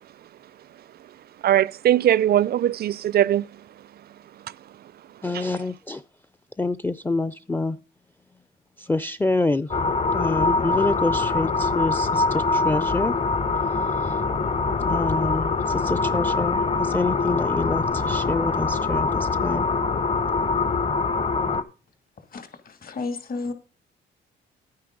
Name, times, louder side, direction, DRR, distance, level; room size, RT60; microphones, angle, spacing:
voice 1, 1.4-3.5 5.3-5.5, right 11 dB, 50° right, 0.4 m, -20 dB
voice 2, 5.2-6.0 6.6-7.8 8.8-9.7 10.1-13.1 14.0-14.2 14.8-19.7, left 2 dB, 10° left, 0.5 m, -27 dB
sound 1, 9.7-21.6, left 3 dB, 30° left, 1.0 m, -24 dB
voice 3, 22.3-23.5, left 3 dB, 45° left, 2.4 m, -32 dB
10.5 x 9.5 x 3.8 m
cardioid pair, 90°, 20 cm